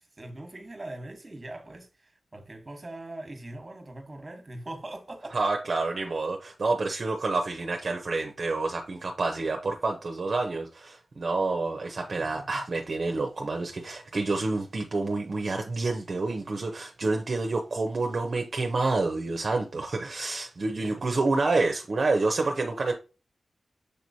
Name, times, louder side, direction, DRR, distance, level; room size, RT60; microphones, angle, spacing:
voice 1, 0.0-5.5 12.2-12.6 20.6-21.1, right 1 dB, 30° right, 1.2 m, -42 dB
voice 2, 5.3-22.9, right 3 dB, 55° right, 0.6 m, -28 dB
6.6 x 3.0 x 2.6 m
cardioid pair, 65°, 0 cm